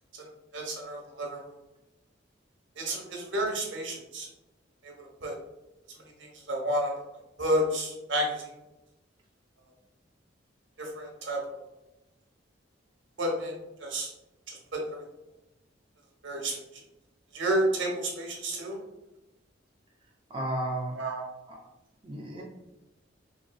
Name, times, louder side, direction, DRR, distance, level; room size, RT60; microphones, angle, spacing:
voice 1, 0.5-1.5 2.8-4.3 5.2-5.4 6.5-6.9 7.4-8.5 10.8-11.4 13.2-13.5 13.8-14.1 14.5-15.0 16.2-16.5 17.3-18.8 21.0-21.3, right 1 dB, 75° right, 0 dB, 0.8 m, -30 dB
voice 2, 20.3-21.0 21.5-21.7 22.0-22.4, right 1 dB, 30° right, -2 dB, 0.4 m, -33 dB
3.5 x 2.4 x 2.2 m, 0.95 s
head